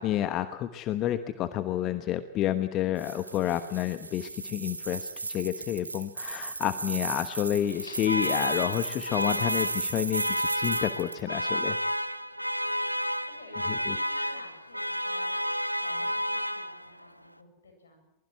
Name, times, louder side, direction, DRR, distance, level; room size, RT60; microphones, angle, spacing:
voice 1, 0.0-11.8 13.7-14.0, left 12 dB, 35° left, 11 dB, 1.2 m, -30 dB
sound 1, 3.0-11.2, right 3 dB, 80° right, 1.6 m, -36 dB
Alarm, 7.6-17.0, equal, 90° left, 0.9 m, -31 dB
voice 2, 13.0-18.1, left 3 dB, 70° left, 4 dB, 7.9 m, -53 dB
23.5 x 21.0 x 8.0 m, 0.81 s
figure-of-eight pair, 90°, 0 cm